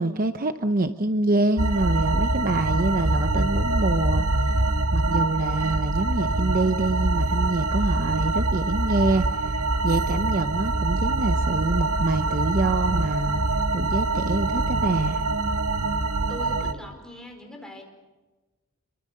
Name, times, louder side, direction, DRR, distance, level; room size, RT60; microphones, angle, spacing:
voice 1, 0.0-4.6 4.9-13.4 13.7-15.2, right 2 dB, 40° right, 8 dB, 0.8 m, -26 dB
sound 1, 1.6-16.7, right 2 dB, 80° right, 1.7 m, -24 dB
voice 2, 16.3-17.8, equal, 5° left, 2 dB, 4.8 m, -40 dB
27.0 x 24.0 x 6.6 m, 1.2 s
head